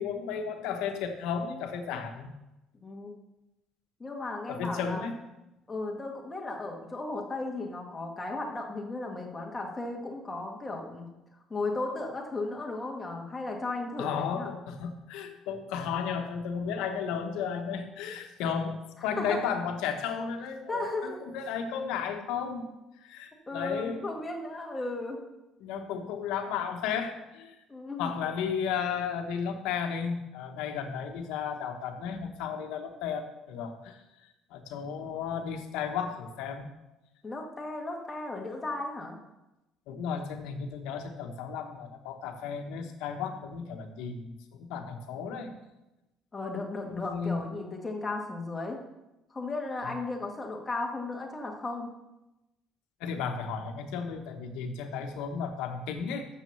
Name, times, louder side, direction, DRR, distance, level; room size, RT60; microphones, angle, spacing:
voice 1, 0.0-2.3 4.5-5.1 14.0-22.7 23.0-24.1 25.6-27.6 28.0-34.0 34.5-36.7 39.9-45.5 46.9-47.4 49.8-50.0 53.0-56.3, left 6 dB, 85° left, 6 dB, 1.1 m, -34 dB
voice 2, 2.8-3.1 4.0-5.0 5.7-11.1 11.5-14.5 19.2-19.4 20.7-21.2 23.5-25.2 27.7-28.1 37.2-39.2 46.3-48.8 49.3-51.9, left 2 dB, 15° left, 1 dB, 1.6 m, -35 dB
6.7 x 6.2 x 7.0 m, 0.96 s
cardioid pair, 125°, 0 cm